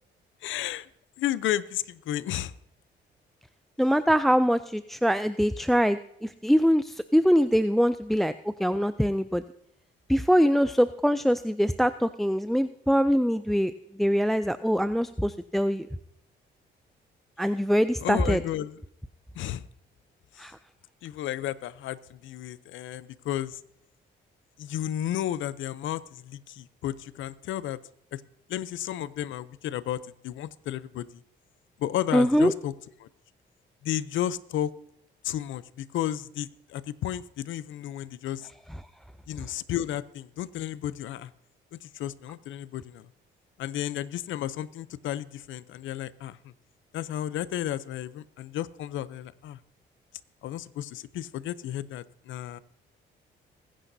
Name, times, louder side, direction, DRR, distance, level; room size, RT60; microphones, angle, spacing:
voice 1, 0.4-0.9 1.2-2.5 18.0-18.8 19.4-19.7 20.3-20.5 21.0-23.6 24.6-27.8 28.1-28.2 28.5-31.2 31.8-32.7 33.0-33.1 33.8-34.7 35.2-38.5 39.3-41.3 41.7-43.1 43.6-46.5 46.9-49.6 50.4-52.6, left 12 dB, 75° left, 17 dB, 0.6 m, -33 dB
voice 2, 3.8-9.4 10.1-15.9 17.4-18.4 20.4-20.6 32.1-32.5, equal, ahead, 13 dB, 0.3 m, -23 dB
21.0 x 10.0 x 2.7 m, 0.76 s
cardioid pair, 90°, 20 cm